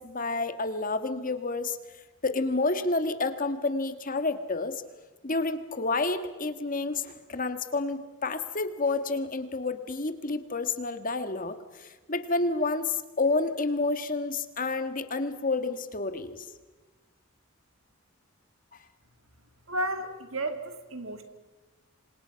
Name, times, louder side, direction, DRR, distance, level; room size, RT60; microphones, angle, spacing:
voice 1, 0.0-1.8 2.2-4.8 5.2-16.5, left 3 dB, 40° left, 9 dB, 1.7 m, -29 dB
voice 2, 19.7-21.2, right 1 dB, 75° right, 7 dB, 2.8 m, -32 dB
28.5 x 26.0 x 5.8 m, 1.2 s
head